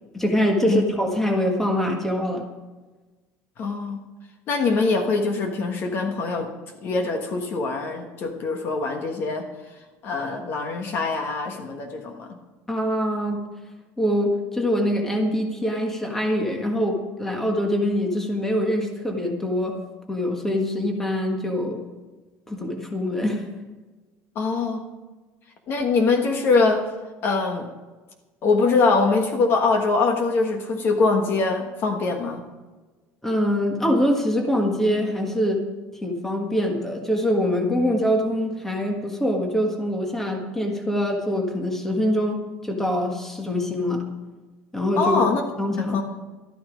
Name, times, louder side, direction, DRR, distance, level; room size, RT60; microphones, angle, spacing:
voice 1, 0.1-2.5 12.7-13.4 14.0-19.8 20.1-21.8 22.5-23.5 33.2-35.6 36.0-44.0 44.7-45.2 45.6-46.0, equal, 5° left, 2 dB, 1.5 m, -24 dB
voice 2, 3.6-4.0 4.5-6.5 6.8-9.5 10.0-12.4 24.3-24.8 25.7-26.8 27.2-27.7 28.4-32.4 45.0-45.4 45.8-46.0, left 4 dB, 40° left, 5 dB, 1.3 m, -23 dB
13.0 x 12.5 x 5.1 m, 1.3 s
cardioid pair, 170°, 6 cm